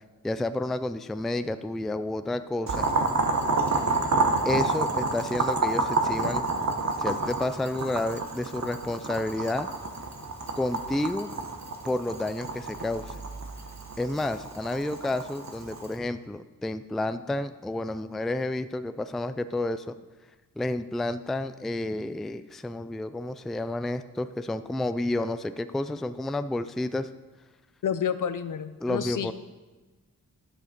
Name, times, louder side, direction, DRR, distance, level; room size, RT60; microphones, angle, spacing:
voice 1, 0.2-2.9 4.4-6.4 7.0-9.7 10.6-11.3 11.8-13.2 14.0-19.9 20.6-27.1 28.8-29.3, left 2 dB, ahead, 11 dB, 0.3 m, -30 dB
Boiling, 2.7-15.9, right 3 dB, 55° right, 1.2 m, -29 dB
voice 2, 27.8-29.3, left 8 dB, 65° left, 12 dB, 0.6 m, -29 dB
10.0 x 6.4 x 5.2 m, 1.2 s
wide cardioid pair, 75°, 34 cm